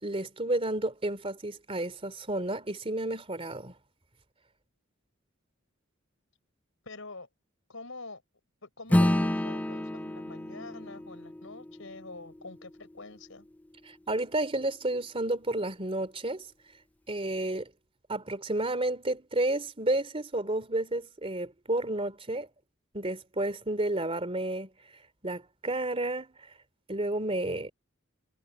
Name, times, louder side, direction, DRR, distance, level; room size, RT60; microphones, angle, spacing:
voice 1, 0.0-3.7 13.9-16.5 17.1-17.7 18.1-22.5 22.9-24.7 25.2-26.3 26.9-27.7, right 1 dB, 30° right, 2.9 m, -31 dB
voice 2, 6.8-7.3 7.7-8.2 8.6-13.5, left 3 dB, 70° left, 5.4 m, -45 dB
Acoustic guitar / Strum, 8.9-13.7, left 1 dB, 10° left, 0.5 m, -30 dB
head